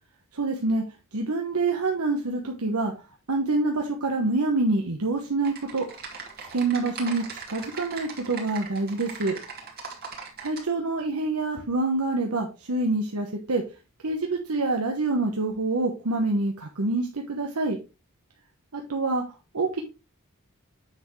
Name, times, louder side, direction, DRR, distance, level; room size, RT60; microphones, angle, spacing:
voice 1, 0.3-0.8 1.1-2.9 3.3-5.9 6.4-9.4 10.4-13.6 14.0-17.8 18.7-19.2 19.5-19.8, right 2 dB, 80° right, 1 dB, 1.1 m, -26 dB
Typing, 5.4-10.6, right 5 dB, 45° right, 2.0 m, -39 dB
7.9 x 6.0 x 3.2 m, 0.29 s
head